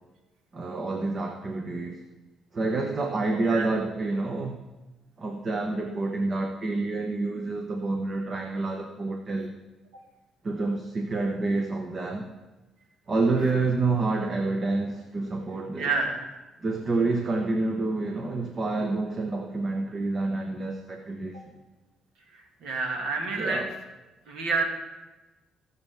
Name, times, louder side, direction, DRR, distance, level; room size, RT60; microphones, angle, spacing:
voice 1, 0.5-2.0 2.5-4.6 5.2-9.5 10.4-12.3 13.1-15.9 16.6-21.4 23.4-23.7, right 3 dB, 35° right, 3 dB, 1.0 m, -28 dB
voice 2, 15.8-16.2 22.3-23.6 24.3-24.7, right 4 dB, 85° right, 1 dB, 2.0 m, -28 dB
18.5 x 6.9 x 3.6 m, 1.1 s
cardioid pair, 125°, 0 cm